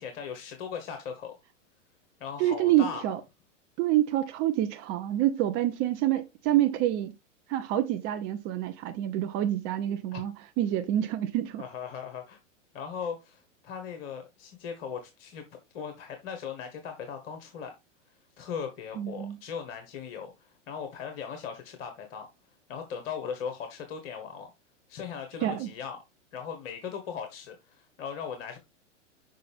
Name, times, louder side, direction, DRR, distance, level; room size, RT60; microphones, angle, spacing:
voice 1, 0.0-1.4 2.2-3.0 10.1-10.2 11.6-12.4 12.7-15.4 15.7-17.7 18.4-22.3 22.7-24.5 24.9-26.0 26.3-28.6, left 7 dB, 50° left, 1.4 m, -38 dB
voice 2, 2.4-3.2 3.8-7.1 7.5-11.6 19.0-19.4 25.4-25.7, right 13 dB, 35° right, 0.7 m, -27 dB
6.5 x 5.4 x 3.5 m
hypercardioid pair, 105°, 37 cm